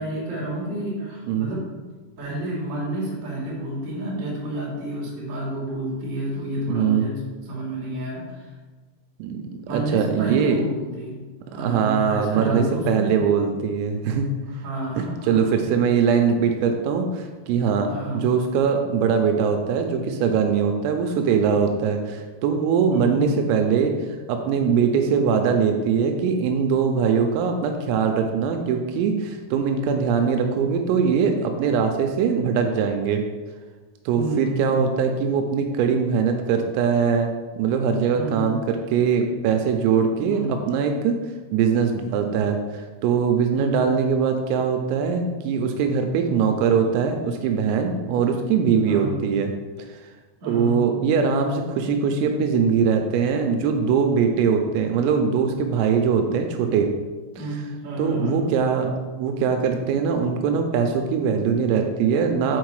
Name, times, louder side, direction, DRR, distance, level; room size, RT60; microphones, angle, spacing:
voice 1, 0.0-1.6 2.2-7.1 7.4-8.5 9.6-11.2 11.5-13.2 14.5-15.5 17.9-18.2 22.9-23.2 34.1-34.8 38.1-38.6 40.2-40.5 43.5-43.9 46.2-46.5 48.8-49.2 50.4-50.8 57.4-58.4, right 1 dB, 35° right, -6 dB, 2.7 m, -30 dB
voice 2, 6.7-7.1 9.2-9.4 9.7-10.6 11.5-14.3 15.0-17.9 18.1-33.2 34.1-37.3 37.6-41.2 41.5-49.5 49.8-49.9 50.5-56.9 58.0-62.6, right 6 dB, 85° right, 4 dB, 3.3 m, -22 dB
8.1 x 4.5 x 4.7 m, 1.3 s
omnidirectional pair, 6.0 m